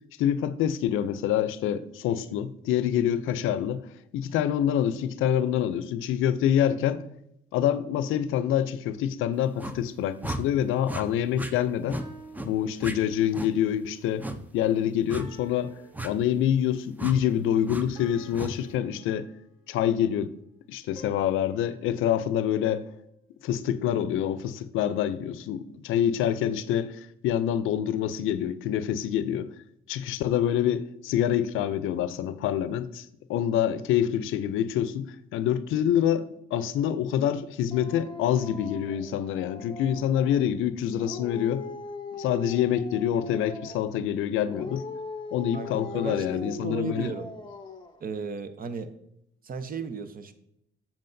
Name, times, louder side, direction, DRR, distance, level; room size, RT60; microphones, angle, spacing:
voice 1, 0.2-3.9 4.1-7.0 7.5-12.0 12.4-14.3 14.5-15.8 16.0-19.3 19.7-20.3 20.7-22.8 23.4-29.5 29.9-41.6 42.2-44.8 45.3-47.1, left 10 dB, 85° left, 0.5 m, -26 dB
sound 1, 9.6-9.8 10.2-10.4 10.8-11.0 11.4-11.5 11.9-12.1 12.3-12.5 12.8-13.0 13.3-13.5 14.2-14.4 15.1-15.3 15.9-16.1 17.0-17.2 17.7-17.8 18.3-18.5, right 1 dB, 10° right, 0.5 m, -34 dB
sound 2, 12.0-13.5 15.1-16.8 18.0-19.9 21.0-23.3, right 2 dB, 25° right, 1.9 m, -51 dB
Dog, 37.7-40.5 41.0-44.1 44.5-48.0, left 4 dB, 25° left, 0.8 m, -40 dB
voice 2, 45.5-47.3 48.0-48.9 49.4-50.3, right 5 dB, 45° right, 0.7 m, -35 dB
7.5 x 7.1 x 2.6 m
cardioid pair, 90°, 20 cm